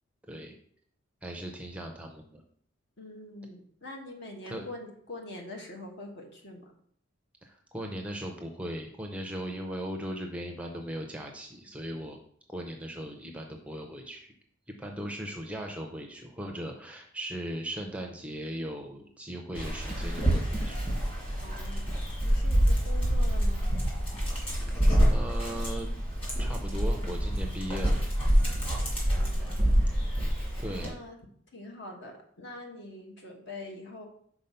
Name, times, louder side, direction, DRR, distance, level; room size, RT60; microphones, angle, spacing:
voice 1, 1.2-2.4 4.5-4.7 7.4-12.2 12.5-14.3 14.7-20.8 24.7-25.9 26.4-28.0 30.6-30.9, equal, 5° right, 2 dB, 0.6 m, -38 dB
voice 2, 3.0-6.7 21.4-22.0 22.2-23.7 29.1-29.7 30.8-31.2 31.5-34.0, left 2 dB, 55° left, 2 dB, 1.2 m, -44 dB
Dog, 19.5-30.9, equal, 25° left, 2.1 m, -27 dB
5.5 x 4.1 x 5.5 m, 0.62 s
head